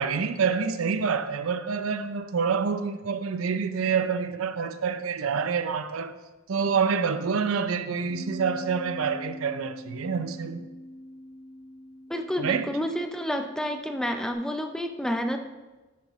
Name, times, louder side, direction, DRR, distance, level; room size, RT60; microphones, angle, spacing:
voice 1, 0.0-6.2 6.5-10.7 12.4-12.8, right 6 dB, 85° right, 0.5 m, -27 dB
Bass guitar, 8.1-14.3, left 1 dB, 40° right, 1.6 m, -43 dB
voice 2, 12.1-15.4, equal, 5° left, 0.5 m, -29 dB
9.3 x 7.5 x 3.1 m
head